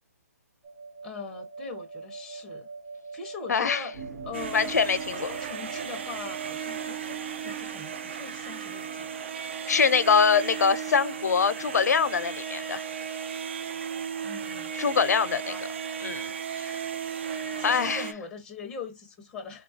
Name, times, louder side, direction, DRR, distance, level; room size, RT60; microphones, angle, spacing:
sound 1, 0.6-6.0, right 4 dB, 25° right, 1.0 m, -43 dB
voice 1, 1.0-2.7 3.1-4.0 4.2-4.8 5.1-9.3 14.2-14.7 15.5-15.7 17.0-17.1 17.6-19.6, left 5 dB, 5° left, 0.6 m, -41 dB
voice 2, 3.5-3.8 4.5-5.3 9.7-12.8 14.7-15.5 16.0-16.8 17.6-18.1, left 6 dB, 85° left, 0.6 m, -24 dB
sound 2, 3.9-10.5, right 5 dB, 65° right, 1.2 m, -48 dB
sound 3, 4.3-18.1, right 7 dB, 45° right, 0.5 m, -35 dB
3.9 x 2.3 x 2.6 m
hypercardioid pair, 170°, 9 cm